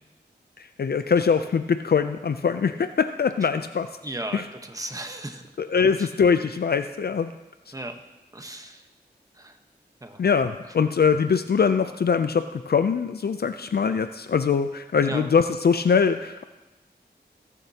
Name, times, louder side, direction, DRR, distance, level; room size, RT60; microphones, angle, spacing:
voice 1, 0.6-3.9 4.3-4.5 5.6-7.3 10.2-16.4, left 6 dB, 60° left, 9 dB, 0.4 m, -22 dB
voice 2, 4.0-5.4 6.0-6.1 7.7-8.0 8.3-8.8 9.4-9.5 10.0-10.2 10.8-10.9 15.0-15.3, right 1 dB, 20° right, 5 dB, 1.1 m, -35 dB
19.5 x 7.2 x 2.8 m, 1.1 s
wide cardioid pair, 55°, 18 cm